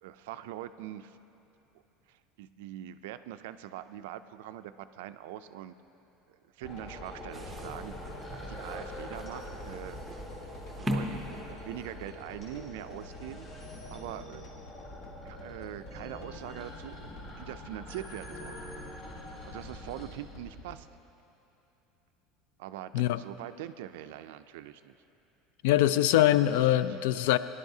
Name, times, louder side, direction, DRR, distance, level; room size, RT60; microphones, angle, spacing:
voice 1, 0.0-1.2 2.1-5.7 6.5-7.9 8.5-10.0 10.8-13.5 13.9-14.5 15.2-18.6 19.4-20.9 22.6-24.9 26.5-27.0, right 12 dB, 80° right, 11 dB, 0.3 m, -43 dB
sound 1, 6.6-20.7, left 1 dB, 50° left, 1.1 m, -48 dB
sound 2, 6.6-20.1, left 1 dB, 25° left, 2.8 m, -46 dB
sound 3, 7.3-12.1, equal, 5° right, 0.6 m, -39 dB
voice 2, 25.6-27.4, left 13 dB, 70° left, 15 dB, 0.3 m, -23 dB
19.0 x 11.0 x 2.7 m, 2.9 s
cardioid pair, 180°, 0 cm